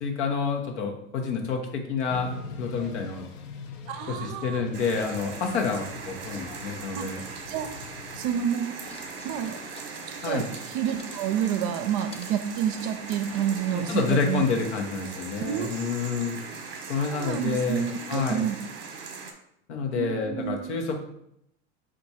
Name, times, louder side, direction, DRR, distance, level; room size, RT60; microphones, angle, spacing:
voice 1, 0.0-2.3 2.6-3.3 4.1-7.2 10.2-10.5 13.7-16.4 16.9-18.4 19.7-21.0, left 5 dB, 85° left, 3 dB, 1.0 m, -28 dB
sound 1, 2.1-8.4, left 6 dB, 60° left, 0.7 m, -42 dB
voice 2, 3.9-4.6 6.9-7.0 7.5-7.7 8.1-8.8 9.2-9.6 10.2-14.4 15.4-15.7 17.0-18.6 20.0-20.7, right 9 dB, 55° right, 8 dB, 0.5 m, -29 dB
sound 2, 4.7-19.3, right 5 dB, 35° right, 0.9 m, -40 dB
sound 3, 8.8-14.1, left 3 dB, 20° left, 0.5 m, -49 dB
4.7 x 2.5 x 4.1 m, 0.76 s
supercardioid pair, 115°, 34 cm